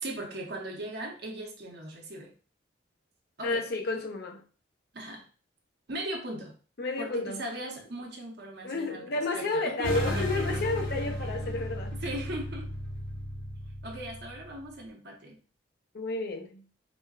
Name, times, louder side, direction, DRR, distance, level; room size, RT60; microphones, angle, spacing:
voice 1, 0.0-2.3 3.4-3.7 4.9-5.3 5.9-6.5 7.0-10.6 11.0-11.3 12.0-12.7 13.8-15.4, right 1 dB, 60° right, 0.9 m, -38 dB
voice 2, 3.4-4.4 6.8-7.4 8.6-12.0 15.9-16.6, left 3 dB, 55° left, 0.6 m, -31 dB
sound 1, 9.8-14.7, equal, 80° left, 1.4 m, -34 dB
5.0 x 2.2 x 2.4 m
head